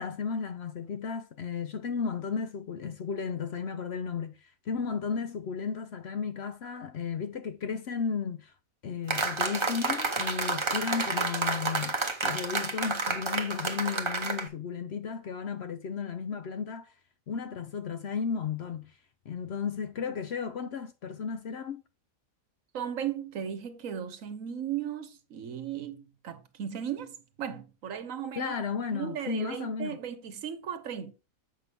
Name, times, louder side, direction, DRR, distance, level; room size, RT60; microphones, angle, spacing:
voice 1, 0.0-8.5 8.8-16.9 17.3-19.0 19.3-21.8 28.3-30.0, left 6 dB, 60° left, 0.7 m, -34 dB
sound 1, 9.1-14.5, right 3 dB, 25° right, 0.8 m, -30 dB
voice 2, 22.7-28.5 28.9-31.1, right 9 dB, 70° right, 1.2 m, -36 dB
7.5 x 5.5 x 3.4 m
omnidirectional pair, 1.5 m